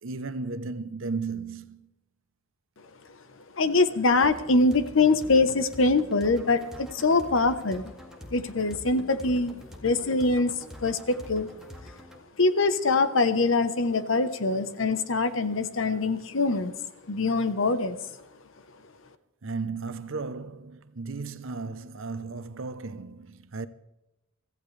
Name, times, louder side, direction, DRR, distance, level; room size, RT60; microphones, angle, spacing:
voice 1, 0.0-1.9 19.4-23.7, right 4 dB, 70° right, 0.8 m, -35 dB
voice 2, 3.5-7.9 8.3-9.5 9.8-10.5 10.8-11.5 12.4-16.7 17.1-18.0, left 3 dB, 70° left, 1.0 m, -23 dB
sound 1, 4.2-12.2, left 1 dB, 5° right, 1.9 m, -45 dB
25.0 x 14.5 x 3.3 m
head